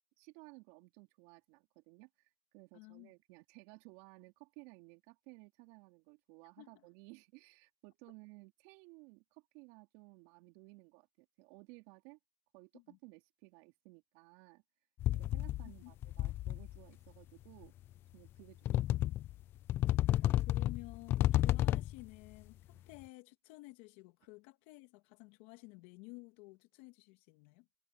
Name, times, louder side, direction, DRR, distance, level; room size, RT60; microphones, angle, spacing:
voice 1, 0.2-12.2 12.5-14.6 15.1-17.7 18.1-18.6 22.7-22.8, right 26 dB, 50° right, 4.2 m, -57 dB
voice 2, 2.7-3.1 6.6-6.9 12.7-13.0 15.8-15.9 20.4-27.7, left 25 dB, 50° left, 2.2 m, -53 dB
sound 1, 15.0-15.7 16.0-16.8 17.6-17.7 18.7-19.4 19.7-22.1, left 14 dB, 30° left, 0.5 m, -31 dB
supercardioid pair, 145°, 7 cm